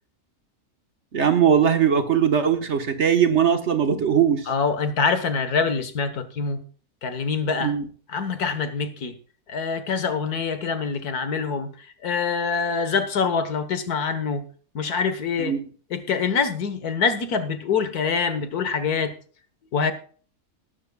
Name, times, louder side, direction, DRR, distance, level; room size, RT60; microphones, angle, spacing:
voice 1, 1.1-4.5 7.6-7.8 15.4-15.6, right 8 dB, 50° right, 1.5 m, -20 dB
voice 2, 4.5-6.6 7.0-7.7 8.1-9.1 9.5-11.7 12.0-14.4 14.8-15.6 15.9-19.1 19.7-19.9, left 5 dB, 85° left, 1.9 m, -25 dB
20.0 x 11.0 x 2.3 m
omnidirectional pair, 1.6 m